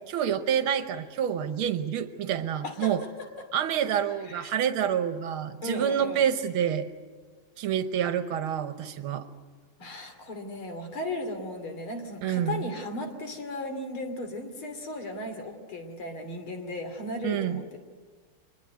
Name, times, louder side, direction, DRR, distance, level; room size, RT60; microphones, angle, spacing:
voice 1, 0.1-3.0 3.5-6.9 7.6-9.2 12.2-12.7 17.2-17.6, right 9 dB, 85° right, 10 dB, 1.8 m, -28 dB
voice 2, 2.6-3.5 4.2-4.6 5.6-6.2 9.8-17.8, left 2 dB, 85° left, 6 dB, 3.7 m, -36 dB
24.5 x 21.5 x 9.3 m, 1.5 s
omnidirectional pair, 2.3 m